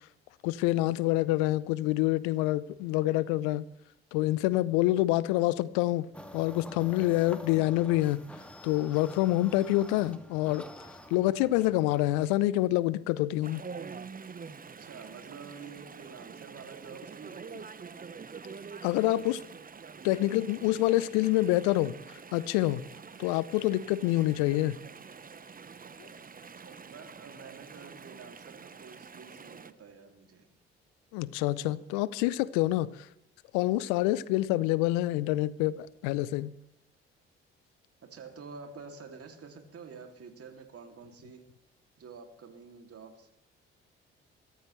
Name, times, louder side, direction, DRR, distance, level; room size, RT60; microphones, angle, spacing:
voice 1, 0.4-3.7 4.1-6.1 6.3-8.2 8.6-10.6 11.1-13.6 18.8-19.4 20.0-21.9 22.3-22.8 23.2-24.8 26.0-26.1 31.1-32.9 33.5-36.5, left 16 dB, 75° left, 0.6 m, -27 dB
sound 1, 6.1-12.3, equal, 5° left, 2.2 m, -47 dB
Chatter / Stream, 13.4-29.7, right 5 dB, 30° right, 1.0 m, -46 dB
voice 2, 14.8-17.7 26.6-30.5 38.0-41.4 42.0-43.3, right 5 dB, 50° right, 2.7 m, -48 dB
22.5 x 14.0 x 3.2 m
hypercardioid pair, 45°, 31 cm